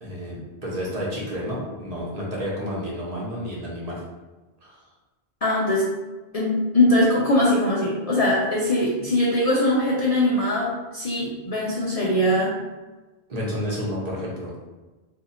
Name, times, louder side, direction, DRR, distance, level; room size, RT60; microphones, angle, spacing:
voice 1, 0.0-4.0 4.6-4.8 13.3-14.5, equal, 40° right, -5 dB, 1.0 m, -30 dB
voice 2, 5.4-5.9 6.3-12.6, left 1 dB, 45° left, -5 dB, 0.5 m, -21 dB
2.6 x 2.6 x 4.1 m, 1.2 s
omnidirectional pair, 1.1 m